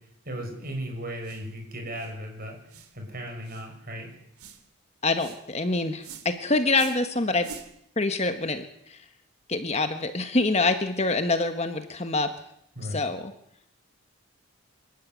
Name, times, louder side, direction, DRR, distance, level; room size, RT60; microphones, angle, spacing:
voice 1, 0.2-2.6 2.9-4.2 12.8-13.0, equal, 40° right, 3 dB, 6.3 m, -36 dB
sound 1, 1.2-1.5 1.9-2.1 2.7-2.9 3.4-3.7 4.4-4.6 5.1-5.4 6.0-6.3 6.7-7.0 7.4-7.7, right 8 dB, 85° right, 2.7 m, -45 dB
voice 2, 5.0-7.5 8.0-9.0 9.5-12.3 12.9-13.3, left 3 dB, 30° left, 8 dB, 1.3 m, -26 dB
26.5 x 12.5 x 9.3 m, 0.74 s
head